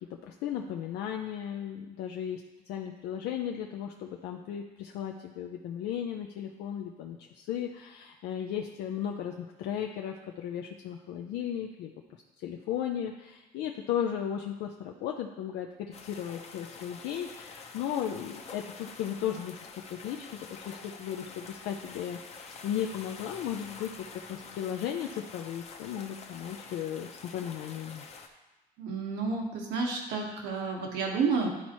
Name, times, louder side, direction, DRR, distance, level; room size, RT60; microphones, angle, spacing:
voice 1, 0.2-2.4 2.7-11.9 12.4-19.6 19.9-22.2 22.6-23.9 24.3-28.1, left 9 dB, 80° left, 2 dB, 0.5 m, -35 dB
sound 1, 15.9-28.3, left 4 dB, 40° left, 0.8 m, -47 dB
voice 2, 28.8-31.5, right 4 dB, 90° right, 0 dB, 1.3 m, -30 dB
11.5 x 4.2 x 3.0 m, 1.1 s
cardioid pair, 110°, 17 cm